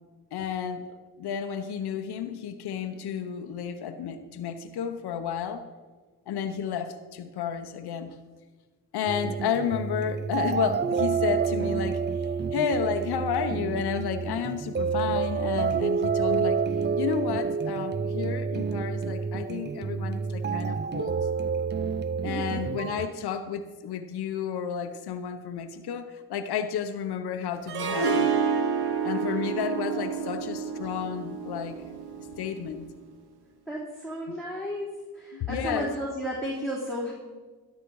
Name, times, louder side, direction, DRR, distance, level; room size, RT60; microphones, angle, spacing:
voice 1, 0.3-0.9 1.2-5.7 6.3-8.2 8.9-16.6 17.0-21.2 22.2-28.3 29.0-31.8 32.2-32.9 34.3-34.4 35.3-35.9, left 7 dB, 85° left, 7 dB, 0.9 m, -32 dB
sound 1, 9.1-23.1, right 5 dB, 30° right, 0.5 m, -29 dB
voice 2, 22.2-22.6 29.9-30.4 33.7-37.1, equal, ahead, -4 dB, 2.9 m, -34 dB
Harp, 27.7-32.7, right 6 dB, 85° right, 1.2 m, -29 dB
13.0 x 11.0 x 4.7 m, 1.4 s
cardioid pair, 65°, 38 cm